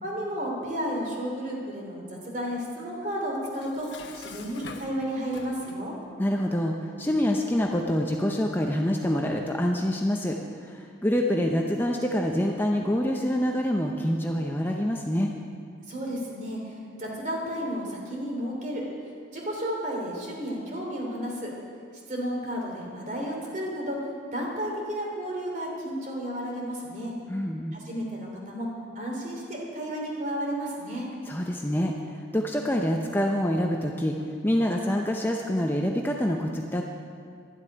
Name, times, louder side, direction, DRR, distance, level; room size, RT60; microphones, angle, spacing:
voice 1, 0.0-3.9 4.1-5.9 15.9-18.8 19.3-21.5 22.1-24.0 24.3-27.1 27.7-28.7 28.9-31.1, equal, 40° right, -2 dB, 3.0 m, -32 dB
Dishes pots and pans, 3.4-5.9, left 4 dB, 70° left, 1.1 m, -45 dB
voice 2, 6.2-15.3 27.3-27.8 31.3-36.8, equal, 10° left, 1 dB, 0.6 m, -26 dB
12.0 x 8.0 x 10.0 m, 2.2 s
head